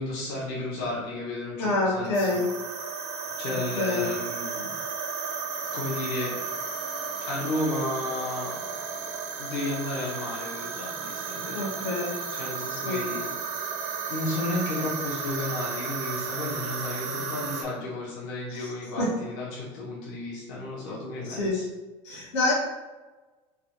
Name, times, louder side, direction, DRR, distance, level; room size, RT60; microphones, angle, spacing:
voice 1, 0.0-2.3 3.4-4.7 5.7-6.3 7.3-8.6 9.4-11.9 12.3-13.3 14.1-21.7, left 2 dB, 70° left, -6 dB, 1.2 m, -33 dB
voice 2, 1.6-2.5 3.7-4.1 11.5-12.2 12.8-13.0 18.5-18.7 19.0-19.1 21.2-21.6 22.0-22.5, left 2 dB, 90° left, -5 dB, 1.3 m, -27 dB
sound 1, 2.1-17.6, right 5 dB, 75° right, 0.7 m, -34 dB
3.7 x 2.4 x 3.0 m, 1.2 s
supercardioid pair, 110°, 15 cm